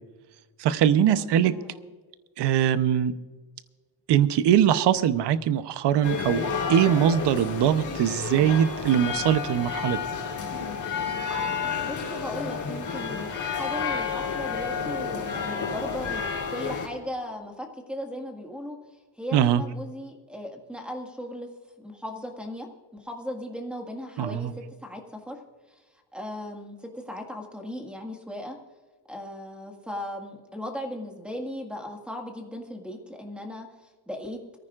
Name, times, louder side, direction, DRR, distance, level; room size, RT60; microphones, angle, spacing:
voice 1, 0.6-1.5 2.4-3.1 4.1-10.0 19.3-19.6 24.2-24.5, right 9 dB, 60° right, 13 dB, 0.8 m, -22 dB
voice 2, 1.2-1.9 11.8-18.8 19.2-21.5 21.8-25.4 25.7-25.8 26.1-28.6 29.1-34.4, equal, ahead, 2 dB, 1.8 m, -37 dB
sound 1, 6.0-16.9, left 6 dB, 40° left, 3.2 m, -31 dB
23.0 x 14.5 x 2.5 m, 1.4 s
cardioid pair, 150°, 47 cm